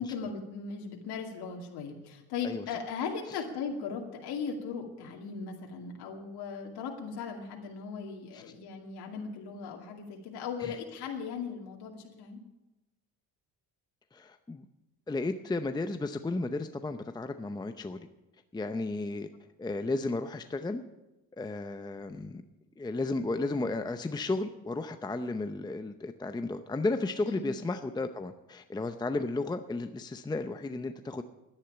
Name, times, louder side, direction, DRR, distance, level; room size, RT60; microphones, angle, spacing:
voice 1, 0.0-12.4 27.3-27.6, left 6 dB, 80° left, 1 dB, 2.4 m, -38 dB
voice 2, 14.1-14.7 15.1-18.1 18.5-19.3 19.6-20.8 21.4-22.4 22.8-31.2, left 2 dB, 10° left, 8 dB, 0.7 m, -33 dB
11.5 x 10.0 x 10.0 m, 1.0 s
cardioid pair, 115°, 39 cm